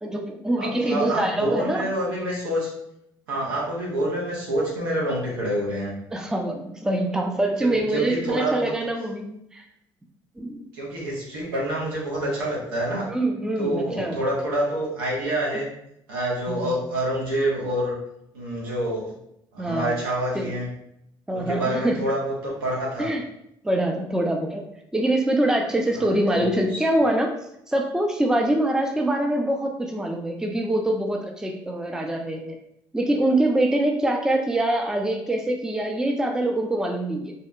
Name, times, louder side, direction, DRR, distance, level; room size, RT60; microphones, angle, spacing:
voice 1, 0.0-1.9 6.1-9.6 10.4-10.6 13.1-14.2 16.5-16.7 19.6-20.0 20.3-20.5 21.3-22.0 23.0-23.2 23.6-24.6 24.9-27.3 27.7-32.6 32.9-37.3, right 1 dB, 5° right, 3 dB, 0.4 m, -24 dB
voice 2, 0.6-2.7 3.3-6.0 7.6-8.7 10.7-13.1 13.6-15.7 16.1-18.0 18.3-19.1 19.5-20.7 21.3-23.1 26.0-26.8, right 1 dB, 85° right, -4 dB, 0.7 m, -27 dB
2.7 x 2.1 x 2.4 m, 0.77 s
hypercardioid pair, 50°, 12 cm